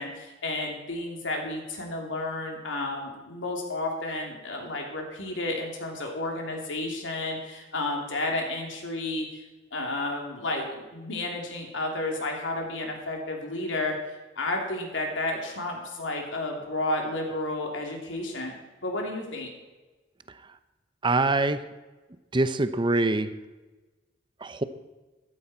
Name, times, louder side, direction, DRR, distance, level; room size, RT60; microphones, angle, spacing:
voice 1, 0.0-9.4 9.7-13.9 14.4-18.5 18.8-19.5, left 2 dB, 80° left, 1 dB, 3.1 m, -31 dB
voice 2, 21.0-21.6 22.3-23.3 24.4-24.6, right 2 dB, 25° right, 12 dB, 0.7 m, -24 dB
14.0 x 13.5 x 4.4 m, 1.2 s
head